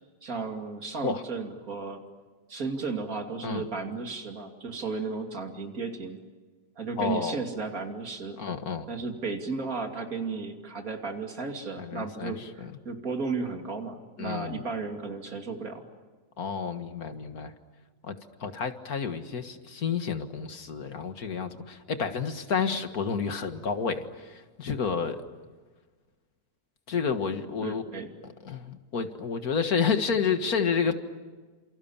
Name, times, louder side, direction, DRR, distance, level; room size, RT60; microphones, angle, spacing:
voice 1, 0.2-2.0 2.5-6.2 6.8-8.4 8.9-15.8 27.6-28.1, right 4 dB, 65° right, 4 dB, 3.2 m, -34 dB
voice 2, 7.0-7.4 8.4-8.9 11.8-12.7 14.2-14.6 16.4-17.5 18.0-18.2 18.4-25.2 26.9-27.8 28.4-30.9, left 6 dB, 70° left, 8 dB, 2.2 m, -30 dB
30.0 x 27.5 x 7.3 m, 1.4 s
omnidirectional pair, 1.6 m